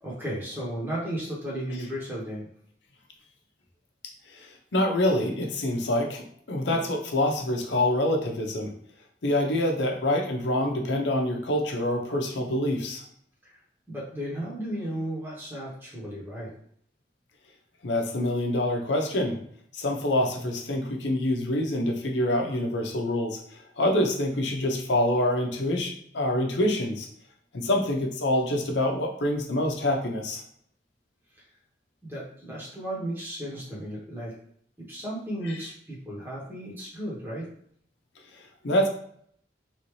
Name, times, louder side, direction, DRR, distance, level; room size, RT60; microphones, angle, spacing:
voice 1, 0.0-2.5 13.4-13.6 13.9-16.5 32.0-34.3 34.9-37.5, right 1 dB, 10° right, -7 dB, 1.1 m, -34 dB
voice 2, 4.3-8.7 9.2-13.0 17.8-19.4 19.7-27.1 27.5-30.4 35.4-35.6 38.3-38.9, left 1 dB, 90° left, 2 dB, 0.7 m, -26 dB
3.2 x 2.7 x 3.1 m, 0.64 s
head